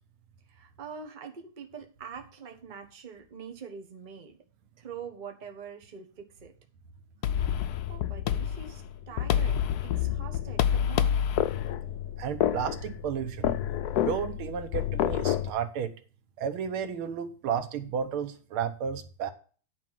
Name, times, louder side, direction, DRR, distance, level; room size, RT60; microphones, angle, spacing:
voice 1, 0.5-4.4 4.8-6.5 7.9-11.2, right 6 dB, 30° right, 1.1 m, -44 dB
sound 1, 7.2-15.5, left 10 dB, 80° left, 0.8 m, -28 dB
voice 2, 12.2-13.6 14.0-15.9 16.4-19.3, right 7 dB, 80° right, 1.8 m, -32 dB
9.7 x 4.5 x 7.4 m
omnidirectional pair, 2.3 m